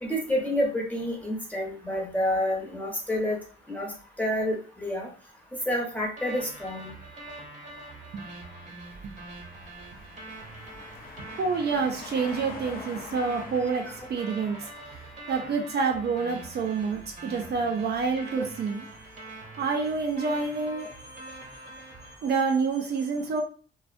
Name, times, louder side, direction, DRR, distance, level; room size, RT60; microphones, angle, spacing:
voice 1, 0.0-3.4 3.7-3.9 4.2-5.1 5.7-6.9 13.9-14.0 18.4-18.5, left 1 dB, 10° left, -2 dB, 0.9 m, -28 dB
sound 1, 6.2-22.1, right 2 dB, 40° right, 0.9 m, -44 dB
sound 2, 8.9-15.7, left 3 dB, 45° left, 0.5 m, -45 dB
voice 2, 11.4-14.6 15.3-18.8 19.6-20.9 22.2-23.4, right 4 dB, 55° right, 2 dB, 0.5 m, -28 dB
2.4 x 2.1 x 2.4 m, 0.40 s
cardioid pair, 90°, 20 cm